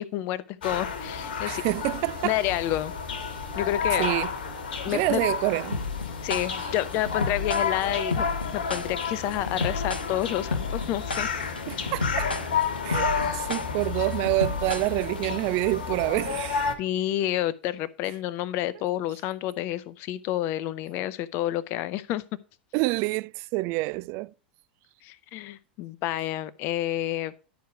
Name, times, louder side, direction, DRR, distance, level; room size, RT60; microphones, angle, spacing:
voice 1, 0.0-1.6 2.2-2.9 3.5-4.1 4.8-5.2 6.2-8.3 8.5-11.3 11.7-11.9 16.8-22.2 25.0-27.3, left 13 dB, 45° left, 0.6 m, -29 dB
sound 1, 0.6-16.8, left 6 dB, 70° left, 1.3 m, -31 dB
voice 2, 1.5-2.4 4.0-4.3 4.9-5.9 11.7-12.4 12.8-16.7 22.7-24.3, right 22 dB, 45° right, 0.3 m, -27 dB
sound 2, 5.7-15.3, left 3 dB, 85° left, 0.8 m, -32 dB
11.5 x 4.7 x 4.8 m
figure-of-eight pair, 90°, 5 cm